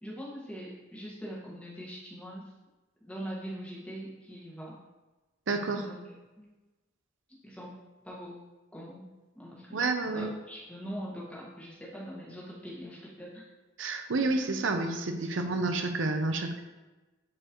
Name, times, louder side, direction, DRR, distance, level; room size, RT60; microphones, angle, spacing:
voice 1, 0.0-2.5 3.1-4.8 5.7-6.0 6.4-6.5 7.3-7.7 8.0-8.4 8.7-9.0 9.3-9.8 10.1-13.5, equal, 5° left, -5 dB, 1.6 m, -42 dB
voice 2, 5.5-5.8 9.7-10.3 13.8-16.6, right 3 dB, 70° right, 5 dB, 0.7 m, -29 dB
10.5 x 4.5 x 3.1 m, 1.2 s
head